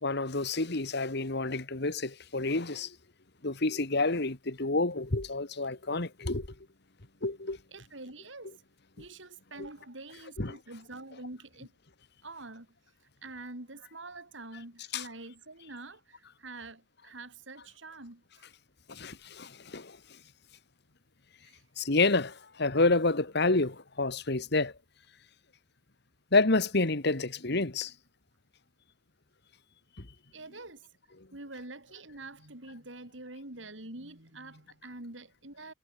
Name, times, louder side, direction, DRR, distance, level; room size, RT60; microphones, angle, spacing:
voice 1, 0.0-3.0 3.4-6.5 7.2-7.6 9.6-9.7 10.4-10.6 14.9-15.1 18.9-20.0 21.8-24.7 26.3-27.9, left 3 dB, 60° left, 2.1 m, -29 dB
voice 2, 7.7-8.6 9.0-11.7 12.2-12.7 13.0-18.5 21.4-21.6 30.3-30.8 31.3-35.7, right 2 dB, 75° right, 4.4 m, -46 dB
head